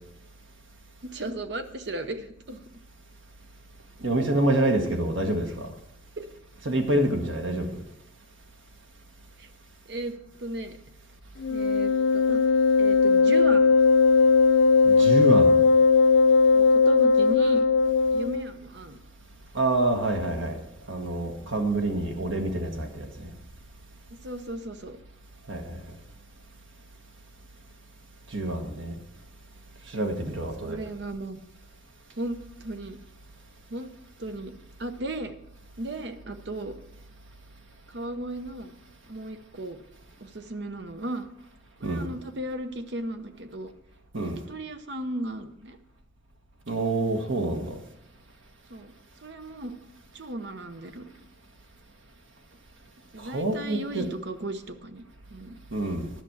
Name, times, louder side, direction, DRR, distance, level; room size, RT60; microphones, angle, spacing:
voice 1, 1.0-2.6 6.2-6.3 9.4-9.5 9.9-10.8 11.5-12.4 12.8-13.8 15.1-15.4 16.5-17.6 18.1-19.0 21.4-21.5 24.1-25.0 28.4-28.6 30.6-31.4 32.2-33.0 33.7-33.9 34.2-34.5 34.8-35.3 35.8-36.7 37.9-38.8 39.1-39.8 40.2-41.3 41.8-43.7 44.2-45.8 48.7-48.9 49.2-49.8 50.1-51.1 53.1-55.0 55.3-55.6, right 1 dB, 60° right, 0.8 m, -36 dB
voice 2, 4.0-5.7 6.6-7.8 14.8-15.6 19.5-20.6 20.9-23.3 25.5-25.8 28.3-29.0 29.9-30.8 41.8-42.1 44.1-44.4 46.7-47.8 53.2-54.1 55.7-56.1, right 2 dB, 80° right, 1.6 m, -27 dB
Wind instrument woodwind instrument, 11.4-18.4, left 4 dB, 70° left, 0.4 m, -19 dB
11.0 x 6.1 x 7.2 m
head